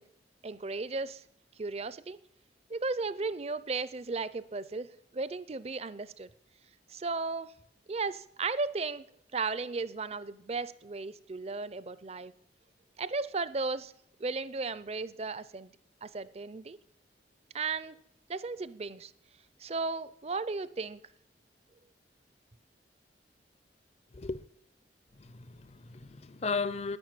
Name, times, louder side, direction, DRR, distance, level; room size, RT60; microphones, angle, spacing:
voice 1, 0.4-1.2 1.6-2.2 2.7-6.3 6.9-7.5 7.9-9.0 9.3-12.3 13.0-13.9 14.2-15.7 16.0-16.8 17.5-18.0 18.3-19.1 19.6-21.0, right 3 dB, 35° right, 0.6 m, -35 dB
voice 2, 25.2-27.0, left 4 dB, 35° left, 0.5 m, -35 dB
10.5 x 10.0 x 9.1 m
head